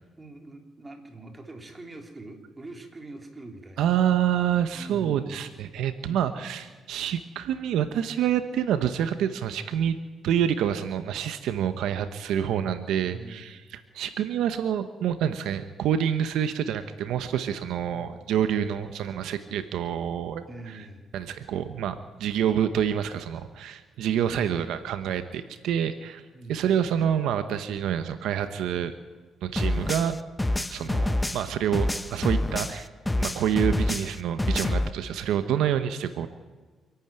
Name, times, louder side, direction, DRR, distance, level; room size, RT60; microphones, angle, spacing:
voice 1, 0.2-3.9 4.7-5.5 6.1-6.5 13.1-13.7 17.8-18.3 20.5-21.1 26.3-26.7 30.8-31.1, right 2 dB, 20° right, 4 dB, 3.5 m, -44 dB
voice 2, 3.8-10.0 10.2-13.6 13.9-20.5 20.7-20.8 21.1-26.2 26.5-28.9 29.4-30.2 30.7-32.9 33.2-36.3, right 9 dB, 85° right, 10 dB, 1.0 m, -27 dB
sound 1, 29.6-32.8 33.1-34.9, left 1 dB, 10° left, 0.8 m, -27 dB
26.5 x 11.5 x 9.0 m, 1.4 s
cardioid pair, 90°, 0 cm